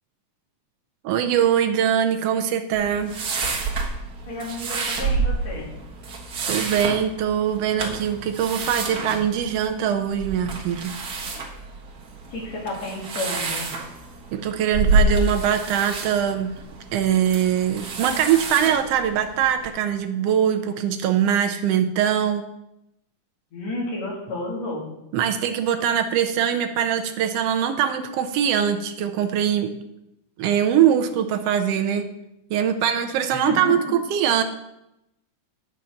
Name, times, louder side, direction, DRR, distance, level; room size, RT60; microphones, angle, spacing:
voice 1, 1.0-3.1 6.5-10.9 14.3-16.5 16.9-22.4 25.1-29.7 30.4-32.0 32.5-34.4, right 9 dB, 80° right, 6 dB, 1.4 m, -22 dB
sound 1, 2.7-19.7, right 3 dB, 45° right, 1.3 m, -28 dB
voice 2, 4.2-5.7 12.3-13.7 23.5-24.9 33.3-33.8, left 2 dB, 60° left, -2 dB, 3.4 m, -31 dB
9.4 x 5.7 x 6.3 m, 0.86 s
omnidirectional pair, 3.6 m